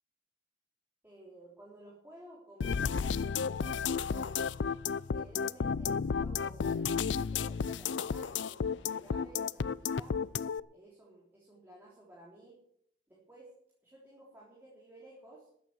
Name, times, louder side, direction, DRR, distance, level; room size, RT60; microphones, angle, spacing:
voice 1, 1.0-4.3 5.1-10.2 10.7-12.6 13.1-13.5 13.8-15.5, right 1 dB, 10° right, -5 dB, 3.5 m, -54 dB
sound 1, 2.6-10.6, left 6 dB, 85° left, 0.5 m, -32 dB
13.5 x 9.0 x 7.9 m, 0.71 s
head